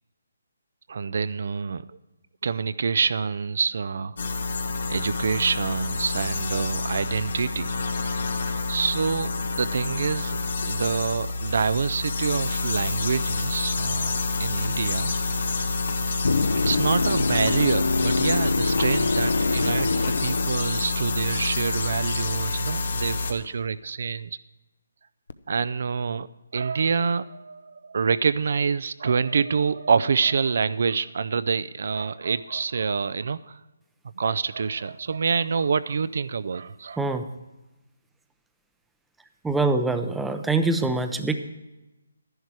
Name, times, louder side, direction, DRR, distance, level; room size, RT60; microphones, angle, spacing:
voice 1, 0.9-2.0 2.4-4.2 4.9-7.8 8.7-10.4 10.7-15.1 15.7-15.8 16.6-24.4 25.5-26.3 26.5-33.6 34.2-37.2, right 5 dB, 60° right, 15 dB, 0.4 m, -26 dB
sound 1, 4.2-23.3, left 3 dB, 65° left, 1.7 m, -28 dB
sound 2, 14.6-14.8 15.9-16.0 17.4-17.6 18.8-19.0 20.0-20.2, left 6 dB, 45° left, 0.8 m, -37 dB
sound 3, 16.2-21.3 25.3-25.4, left 3 dB, 80° left, 0.7 m, -25 dB
voice 2, 39.4-41.3, right 3 dB, 5° right, 8 dB, 0.6 m, -24 dB
12.0 x 11.0 x 4.7 m, 1.0 s
hypercardioid pair, 160°, 0 cm